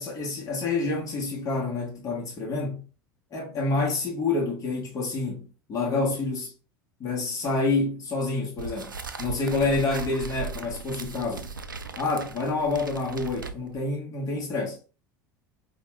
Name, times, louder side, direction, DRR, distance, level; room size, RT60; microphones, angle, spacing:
voice 1, 0.0-2.8 3.3-6.5 7.0-8.9 9.2-11.5 12.0-14.8, left 3 dB, 35° left, 1.4 m, -28 dB
sound 1, 8.6-13.9, right 5 dB, 90° right, 0.4 m, -37 dB
5.1 x 2.5 x 3.2 m
figure-of-eight pair, 75°, 11 cm